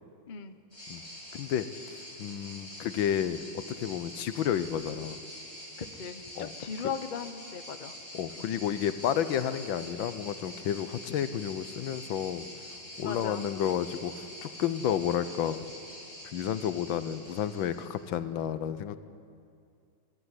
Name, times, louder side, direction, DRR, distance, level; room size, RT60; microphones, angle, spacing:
voice 1, 0.3-0.6 5.8-7.9 8.6-8.7 13.0-13.4, left 6 dB, 45° left, 9 dB, 0.6 m, -38 dB
sound 1, 0.7-18.1, left 1 dB, 15° left, 6.5 m, -45 dB
voice 2, 1.3-1.7 2.2-3.4 3.8-5.2 6.4-6.5 8.1-12.5 13.0-14.1 14.4-15.6 16.3-19.0, left 9 dB, 75° left, 12 dB, 1.5 m, -31 dB
21.5 x 14.5 x 9.8 m, 2.3 s
omnidirectional pair, 2.2 m